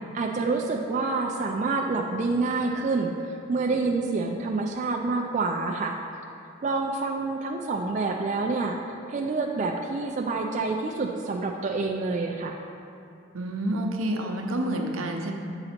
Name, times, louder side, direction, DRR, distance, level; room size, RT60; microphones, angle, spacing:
voice 1, 0.1-3.1 3.5-5.9 6.6-12.6, right 3 dB, 35° right, 0 dB, 0.3 m, -27 dB
voice 2, 13.3-15.3, right 1 dB, 75° right, 2 dB, 0.7 m, -28 dB
7.9 x 4.0 x 4.3 m, 2.8 s
head